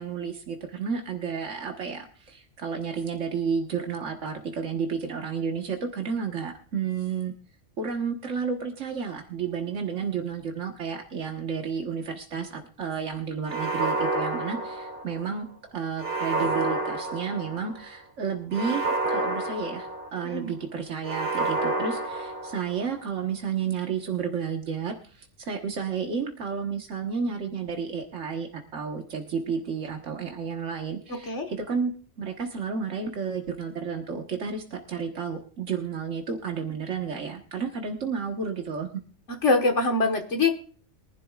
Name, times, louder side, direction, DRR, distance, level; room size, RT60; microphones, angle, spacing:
voice 1, 0.0-7.3 7.8-31.9 32.2-39.0, right 6 dB, 90° right, 2 dB, 1.7 m, -31 dB
sound 1, 13.5-15.3 16.0-17.8 18.5-20.4 21.0-22.9, right 2 dB, 50° right, 3.9 m, -29 dB
voice 2, 20.2-20.5 31.1-31.5 39.3-40.5, left 3 dB, 75° left, 4 dB, 1.9 m, -24 dB
22.5 x 11.5 x 2.4 m, 0.42 s
omnidirectional pair, 1.2 m